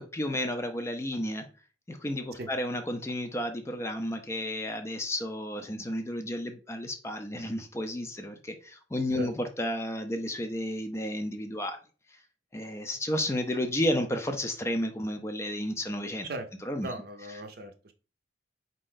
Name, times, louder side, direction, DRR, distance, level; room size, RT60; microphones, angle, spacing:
voice 1, 0.0-1.5 1.9-11.8 12.5-16.3 16.7-16.9, left 1 dB, 15° left, 6 dB, 0.4 m, -32 dB
voice 2, 16.8-17.9, right 1 dB, 50° right, 7 dB, 0.6 m, -37 dB
4.4 x 2.5 x 3.7 m, 0.36 s
head